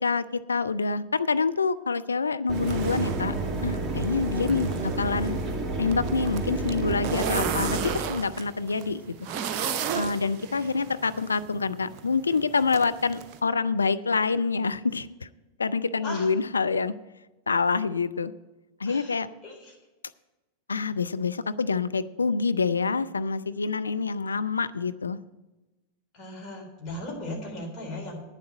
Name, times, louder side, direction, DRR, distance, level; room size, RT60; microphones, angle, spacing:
voice 1, 0.0-3.3 3.6-5.4 5.8-9.1 9.9-15.3 15.6-16.9 17.5-18.3 18.8-19.3 20.7-25.2, left 4 dB, 75° left, 12 dB, 0.4 m, -26 dB
Mechanisms, 2.5-8.0, right 3 dB, 10° right, 2.0 m, -30 dB
sound 1, 2.5-13.4, right 8 dB, 40° right, 0.7 m, -35 dB
voice 2, 4.4-5.1 16.0-16.3 18.9-19.8 26.1-28.2, left 1 dB, 30° left, 0 dB, 3.7 m, -38 dB
9.7 x 7.4 x 7.7 m, 1.1 s
figure-of-eight pair, 90°, 0 cm